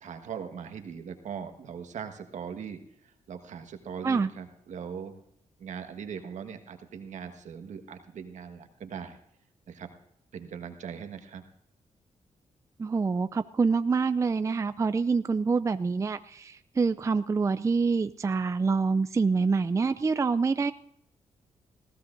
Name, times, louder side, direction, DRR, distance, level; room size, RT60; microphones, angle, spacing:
voice 1, 0.0-5.2 5.6-9.2 9.7-9.9 10.3-11.4, right 7 dB, 75° right, 6 dB, 1.4 m, -40 dB
voice 2, 12.8-20.7, right 4 dB, 25° right, 11 dB, 0.4 m, -26 dB
20.0 x 15.5 x 2.6 m, 0.73 s
cardioid pair, 70°, 12 cm